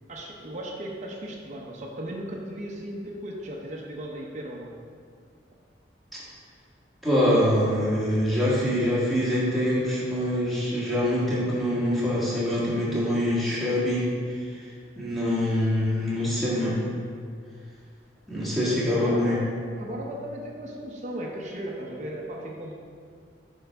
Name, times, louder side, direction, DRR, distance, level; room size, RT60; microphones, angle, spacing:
voice 1, 0.1-4.7 18.3-19.5 19.8-22.7, right 1 dB, 40° right, -2 dB, 0.7 m, -36 dB
voice 2, 7.0-14.4 15.0-16.8 18.3-19.4, left 1 dB, ahead, -8 dB, 1.7 m, -24 dB
7.6 x 5.5 x 3.5 m, 2.1 s
head